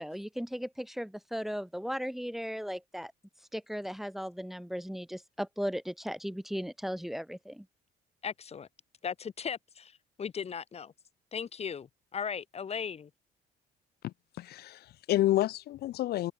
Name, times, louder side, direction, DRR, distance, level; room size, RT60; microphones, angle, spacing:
voice 1, 0.0-3.1 3.5-7.6, equal, ahead, 2.8 m, -36 dB
voice 2, 8.2-8.7 9.0-10.9 11.3-13.1, left 7 dB, 40° left, 4.4 m, -37 dB
voice 3, 14.0-16.3, left 14 dB, 70° left, 2.0 m, -30 dB
open air
cardioid pair, 110°, 17 cm